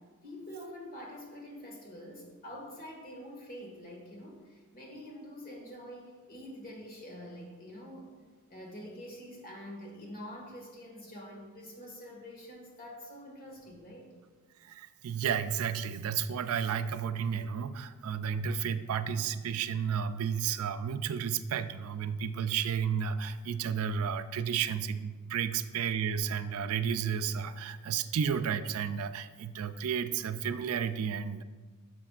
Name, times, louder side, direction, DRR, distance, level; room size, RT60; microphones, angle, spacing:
voice 1, 0.0-8.1 8.5-14.1, equal, 40° left, 0 dB, 1.7 m, -46 dB
voice 2, 14.6-31.4, right 7 dB, 70° right, 11 dB, 0.4 m, -32 dB
10.0 x 6.6 x 2.4 m, 1.4 s
head